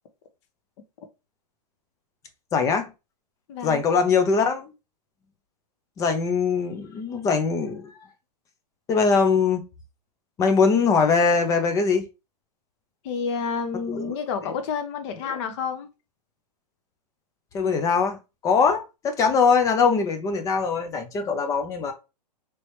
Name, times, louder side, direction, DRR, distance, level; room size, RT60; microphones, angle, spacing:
voice 1, 2.5-2.9 3.6-4.7 6.0-8.0 8.9-9.6 10.4-12.1 17.5-21.9, left 5 dB, 15° left, 0.4 m, -22 dB
voice 2, 3.5-3.8 13.0-15.9, left 6 dB, 45° left, 0.8 m, -29 dB
3.1 x 2.8 x 3.1 m
hypercardioid pair, 135°, 21 cm